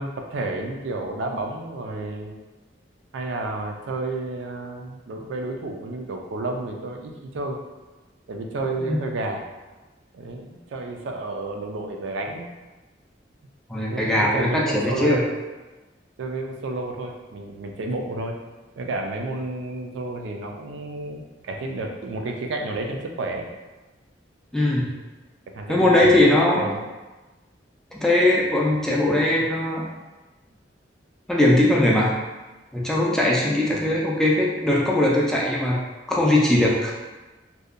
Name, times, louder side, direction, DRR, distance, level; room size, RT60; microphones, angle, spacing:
voice 1, 0.0-2.4 3.1-7.6 8.3-9.4 10.1-12.5 13.9-15.3 16.2-18.4 18.8-23.5 25.5-26.2 26.5-26.8 33.6-34.0, right 2 dB, 80° right, 2 dB, 0.4 m, -31 dB
voice 2, 13.7-15.2 24.5-24.9 25.7-26.7 27.9-29.9 31.3-32.1 32.7-35.8 36.1-36.9, left 1 dB, 5° left, -4 dB, 0.3 m, -20 dB
2.7 x 2.2 x 2.4 m, 1.2 s
head